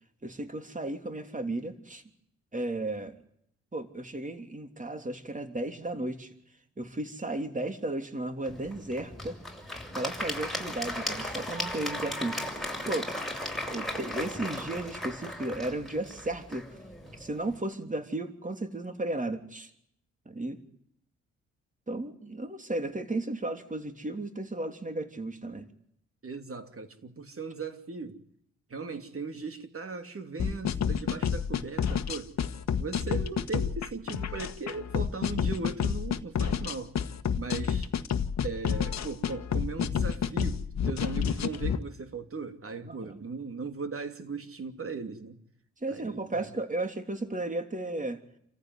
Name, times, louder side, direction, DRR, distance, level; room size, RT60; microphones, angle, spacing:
voice 1, 0.2-2.0 2.5-3.2 3.7-6.3 6.8-9.4 9.9-12.4 12.8-13.1 13.7-16.7 17.1-19.7 20.2-20.6 21.9-25.7 42.8-43.2 45.8-48.2, right 2 dB, 25° right, 3.3 m, -34 dB
Applause / Crowd, 8.4-17.5, left 1 dB, ahead, 7.2 m, -36 dB
voice 2, 26.2-28.2 28.7-32.3 32.8-37.0 37.3-37.9 38.4-45.4 45.9-46.5, right 4 dB, 40° right, 3.0 m, -38 dB
sound 1, 30.4-41.8, left 7 dB, 55° left, 1.4 m, -29 dB
29.0 x 14.5 x 9.7 m
hypercardioid pair, 45°, 33 cm